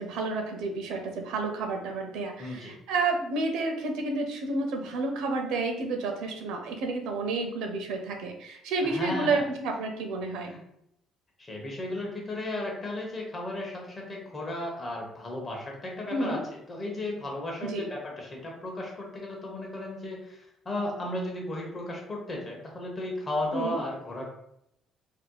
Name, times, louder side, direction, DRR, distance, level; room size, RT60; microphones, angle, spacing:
voice 1, 0.0-10.5 16.1-16.4 17.6-17.9 23.5-23.8, right 3 dB, 85° right, 3 dB, 0.6 m, -30 dB
voice 2, 2.4-2.7 8.8-9.4 10.5-10.6 11.4-24.3, left 1 dB, 20° left, -1 dB, 0.8 m, -35 dB
4.1 x 2.7 x 2.2 m, 0.77 s
cardioid pair, 170°, 0 cm